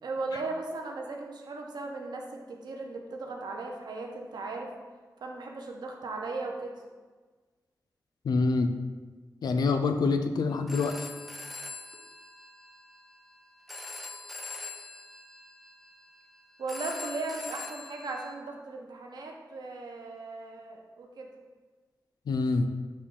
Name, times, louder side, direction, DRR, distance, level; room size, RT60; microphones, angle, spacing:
voice 1, 0.0-4.7 5.2-6.8 16.6-21.3, right 3 dB, 85° right, 1 dB, 0.6 m, -37 dB
voice 2, 8.2-8.8 9.4-11.1 22.3-22.7, left 3 dB, 80° left, 7 dB, 0.3 m, -26 dB
Telephone, 10.5-18.3, left 3 dB, ahead, 0.4 m, -43 dB
6.3 x 2.2 x 3.7 m, 1.4 s
wide cardioid pair, 110°, 7 cm